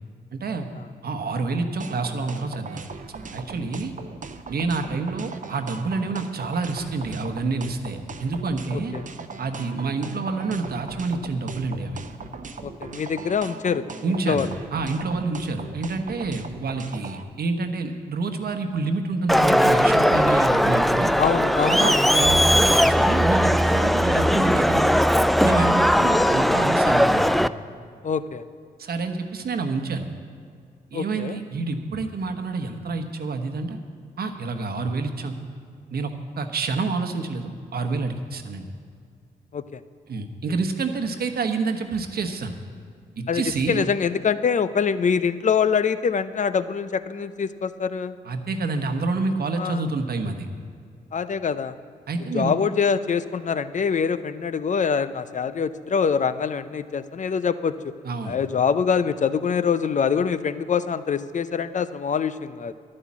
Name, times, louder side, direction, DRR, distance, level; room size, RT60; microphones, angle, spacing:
voice 1, 0.3-0.7 1.0-2.8 3.3-3.9 4.5-8.9 9.4-12.0 14.0-21.1 21.7-25.1 25.4-27.3 28.8-30.1 30.9-33.8 34.2-35.3 35.9-38.7 40.1-42.5 43.2-43.9 48.2-50.5 52.1-52.5 58.0-58.4, right 3 dB, 65° right, 6 dB, 1.1 m, -28 dB
sound 1, 1.8-17.2, right 4 dB, 50° right, 0.8 m, -39 dB
voice 2, 8.7-9.0 12.6-13.9 14.3-14.5 21.2-22.3 28.0-28.4 30.9-31.4 39.5-39.8 43.3-48.2 49.5-49.9 51.1-51.7 52.3-57.7 58.2-62.7, left 6 dB, 45° left, 13 dB, 0.6 m, -24 dB
Crowd, 19.3-27.5, equal, ahead, 0.3 m, -19 dB
11.0 x 9.8 x 7.3 m, 2.2 s
cardioid pair, 55°, 17 cm